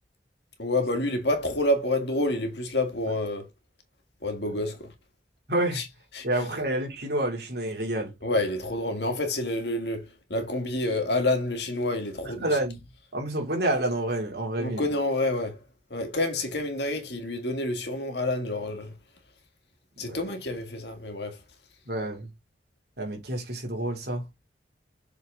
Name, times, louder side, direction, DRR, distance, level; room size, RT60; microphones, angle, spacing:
voice 1, 0.6-3.5 4.2-4.9 5.8-5.9 6.1-6.3 8.2-10.1 10.3-12.5 14.6-15.6 15.9-18.9 20.0-21.3, left 1 dB, 70° left, 1.9 m, -28 dB
voice 2, 5.5-5.8 6.2-8.1 12.2-12.8 13.1-14.9 20.0-20.2 21.9-22.3 23.0-24.2, right 1 dB, 60° right, 3.0 m, -28 dB
6.9 x 4.2 x 3.8 m
head